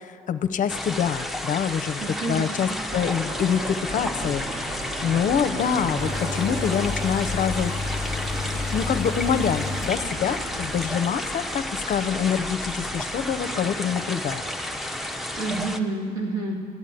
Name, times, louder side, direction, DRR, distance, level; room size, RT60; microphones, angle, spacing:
voice 1, 0.0-8.1 8.7-14.4, left 7 dB, 50° left, 11 dB, 0.6 m, -26 dB
sound 1, 0.7-15.8, left 1 dB, ahead, 0.6 m, -32 dB
voice 2, 2.0-2.9 15.4-16.7, right 2 dB, 70° right, -1 dB, 2.4 m, -29 dB
sound 2, 2.9-13.4, equal, 25° right, 1.2 m, -36 dB
sound 3, 6.0-10.4 10.7-10.8, left 4 dB, 15° left, 1.1 m, -32 dB
12.0 x 8.2 x 9.0 m, 2.3 s
cardioid pair, 110°, 17 cm